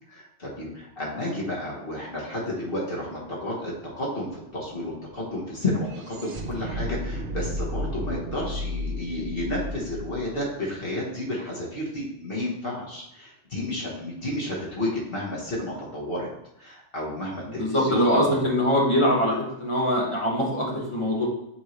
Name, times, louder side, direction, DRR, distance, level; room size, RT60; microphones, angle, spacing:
voice 1, 0.1-16.3 16.6-18.4, left 1 dB, 50° left, -4 dB, 1.5 m, -31 dB
sound 1, 3.3-11.5, equal, 55° right, 0.9 m, -34 dB
voice 2, 17.6-21.3, equal, 25° left, -3 dB, 1.6 m, -23 dB
7.1 x 4.5 x 3.2 m, 0.81 s
omnidirectional pair, 1.2 m